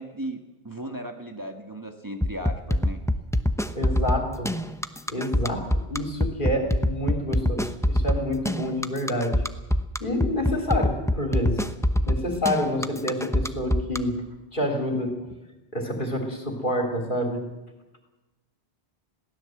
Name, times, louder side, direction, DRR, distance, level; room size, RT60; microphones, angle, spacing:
voice 1, 0.0-3.0, right 1 dB, 20° right, 3 dB, 1.6 m, -36 dB
sound 1, 2.2-14.0, left 1 dB, 5° left, 0.8 m, -24 dB
voice 2, 3.7-4.5 5.1-5.6 5.9-9.4 10.0-11.6 12.1-14.2 14.5-15.2 15.7-17.4, left 1 dB, 55° left, 3 dB, 3.6 m, -28 dB
22.0 x 16.5 x 7.9 m, 1.0 s
omnidirectional pair, 1.1 m